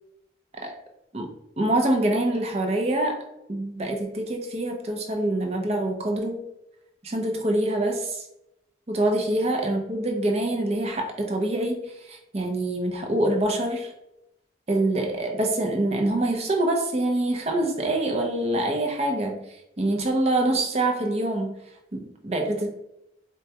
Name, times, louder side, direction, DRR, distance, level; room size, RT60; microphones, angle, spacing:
voice 1, 1.6-3.2 3.5-6.4 7.0-8.2 8.9-13.9 14.7-19.5 19.8-21.6 21.9-22.7, right 1 dB, 35° right, 2 dB, 0.5 m, -25 dB
4.4 x 2.3 x 2.8 m, 0.84 s
head